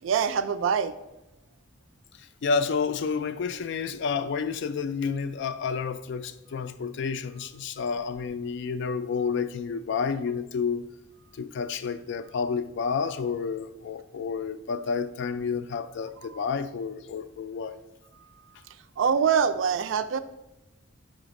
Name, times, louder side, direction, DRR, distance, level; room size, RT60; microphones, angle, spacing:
voice 1, 0.0-0.9 16.3-16.5 18.7-20.2, right 6 dB, 70° right, 0.4 m, -25 dB
voice 2, 2.4-10.8 11.3-17.8, left 5 dB, 65° left, 0.3 m, -30 dB
5.0 x 3.8 x 5.1 m
head